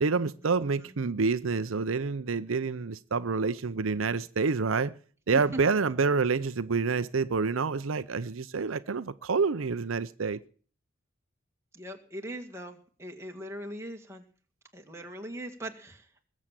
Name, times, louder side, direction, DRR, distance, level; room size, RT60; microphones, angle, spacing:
voice 1, 0.0-4.9 5.3-10.4, right 4 dB, 75° right, 0.6 m, -28 dB
voice 2, 11.7-14.2 14.7-16.3, right 1 dB, 15° right, 2.0 m, -40 dB
20.5 x 7.4 x 7.5 m
head